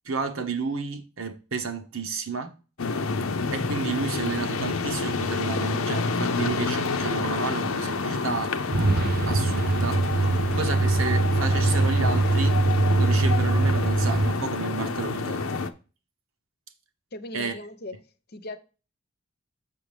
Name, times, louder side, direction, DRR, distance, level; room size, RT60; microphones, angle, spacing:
voice 1, 0.0-2.5 3.5-8.5 9.3-12.6 12.9-15.6 17.3-17.5, right 5 dB, 70° right, 1.1 m, -31 dB
sound 1, 2.8-15.7, left 4 dB, 80° left, 0.7 m, -28 dB
Truck, 8.7-14.3, right 3 dB, 45° right, 0.5 m, -23 dB
voice 2, 17.1-18.0 18.3-18.6, left 2 dB, 50° left, 0.8 m, -38 dB
6.8 x 6.4 x 3.4 m
head